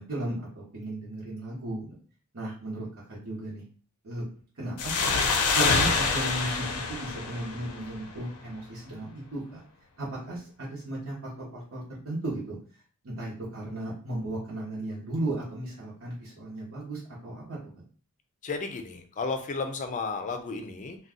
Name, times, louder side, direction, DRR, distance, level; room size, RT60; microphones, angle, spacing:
voice 1, 0.0-2.0 2.3-3.6 4.0-4.2 4.6-5.1 5.5-9.6 10.0-12.6 13.0-17.8, right 1 dB, 65° right, -6 dB, 0.9 m, -35 dB
sound 1, 4.8-8.2, left 4 dB, 90° left, 0.5 m, -26 dB
voice 2, 18.4-21.0, left 4 dB, 35° left, 6 dB, 0.4 m, -33 dB
2.6 x 2.3 x 3.6 m, 0.42 s
head